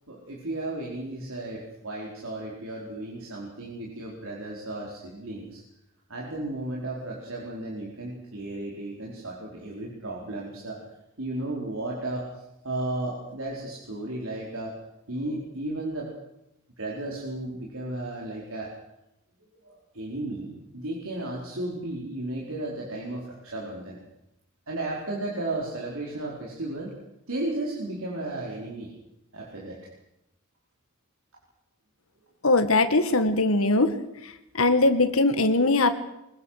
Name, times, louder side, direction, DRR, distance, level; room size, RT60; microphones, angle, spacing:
voice 1, 0.1-5.6 6.1-10.8 11.2-12.3 12.6-14.7 15.1-16.1 16.8-18.7 19.6-24.0 24.7-26.9 27.3-28.9 29.3-29.8, right 2 dB, 75° right, -3 dB, 4.6 m, -34 dB
voice 2, 32.4-33.9 34.5-35.9, left 2 dB, 75° left, 9 dB, 1.9 m, -21 dB
23.5 x 21.0 x 6.6 m, 0.87 s
head